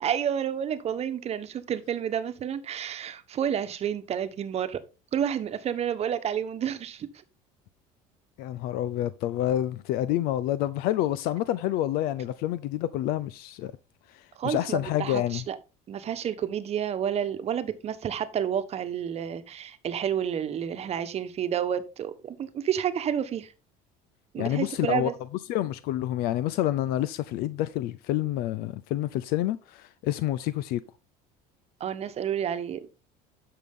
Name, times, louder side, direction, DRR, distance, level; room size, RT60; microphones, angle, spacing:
voice 1, 0.0-4.8 5.1-7.1 14.3-15.6 15.9-23.5 24.3-25.1 31.8-32.9, right 9 dB, 40° right, 1.2 m, -30 dB
voice 2, 8.4-13.7 14.1-15.4 24.4-25.1 25.5-30.8, left 13 dB, 70° left, 0.6 m, -28 dB
10.5 x 6.7 x 3.7 m
cardioid pair, 120°, 16 cm